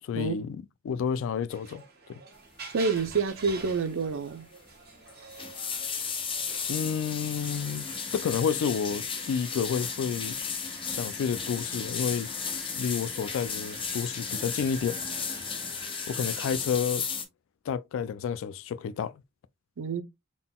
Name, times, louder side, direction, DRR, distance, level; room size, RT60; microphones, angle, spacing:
voice 1, 0.0-1.8 2.1-2.2 6.7-10.4 10.9-12.3 12.7-15.0 16.1-17.0 17.7-19.2, left 7 dB, 65° left, 0.3 m, -30 dB
sound 1, 1.5-16.6, right 4 dB, 50° right, 1.4 m, -47 dB
voice 2, 2.7-4.5 19.8-20.0, right 4 dB, 65° right, 0.5 m, -28 dB
sound 2, 3.0-3.2 3.4-3.8 4.0-4.1 5.1-17.2, left 6 dB, 25° left, 0.6 m, -35 dB
3.8 x 3.7 x 2.2 m
head